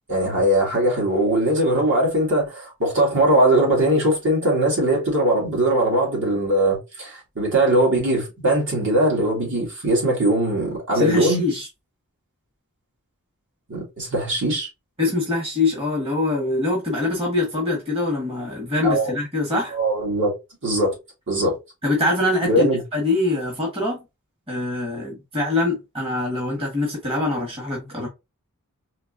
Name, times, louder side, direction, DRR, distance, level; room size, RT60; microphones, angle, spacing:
voice 1, 0.1-11.4 13.7-14.7 18.8-19.1 19.7-20.3 20.6-20.9 21.3-21.6 22.4-22.8, right 1 dB, 55° right, 2.2 m, -20 dB
voice 2, 10.9-11.7 15.0-19.8 21.8-24.0 24.5-28.1, left 2 dB, 25° right, 1.4 m, -24 dB
4.3 x 2.9 x 2.6 m
head